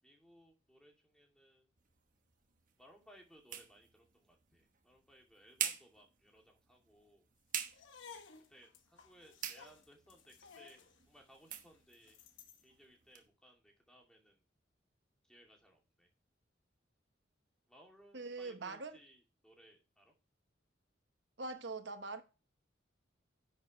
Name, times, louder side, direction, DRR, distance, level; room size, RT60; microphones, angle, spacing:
voice 1, 0.0-1.7 2.8-7.3 8.5-12.2 12.6-14.4 15.2-16.1 17.7-20.1, equal, 5° left, 2.6 m, -63 dB
sound 1, 1.8-13.3, right 9 dB, 45° right, 1.2 m, -47 dB
sound 2, 7.7-12.7, left 6 dB, 90° left, 1.2 m, -57 dB
voice 2, 18.1-18.9 21.4-22.2, right 3 dB, 65° right, 1.0 m, -42 dB
10.0 x 6.6 x 3.2 m
head